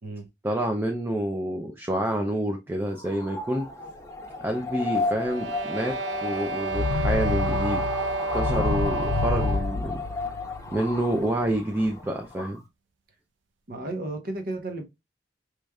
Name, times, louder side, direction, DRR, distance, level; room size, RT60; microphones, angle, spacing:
voice 1, 0.4-3.7 4.4-7.8 8.3-10.0 10.7-12.6, right 1 dB, 10° right, 0.5 m, -28 dB
sound 1, 2.9-12.6, left 3 dB, 15° left, 0.8 m, -34 dB
sound 2, 5.1-9.8, right 3 dB, 80° right, 0.5 m, -31 dB
sound 3, 6.7-10.7, left 3 dB, 65° left, 0.7 m, -28 dB
voice 2, 13.7-14.9, right 2 dB, 55° right, 1.0 m, -33 dB
5.0 x 3.1 x 2.3 m
head